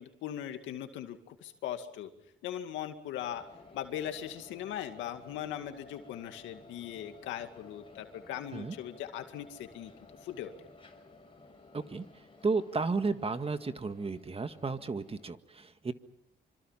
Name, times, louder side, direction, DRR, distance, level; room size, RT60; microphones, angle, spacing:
voice 1, 0.0-2.1 2.4-3.4 3.7-9.9 10.2-10.5, left 10 dB, 90° left, 7 dB, 2.3 m, -39 dB
sound 1, 3.2-15.3, left 3 dB, 25° left, 5.7 m, -55 dB
voice 2, 11.7-12.0 12.4-15.9, right 4 dB, 30° right, 9 dB, 1.8 m, -33 dB
26.0 x 26.0 x 5.8 m, 0.79 s
cardioid pair, 70°, 19 cm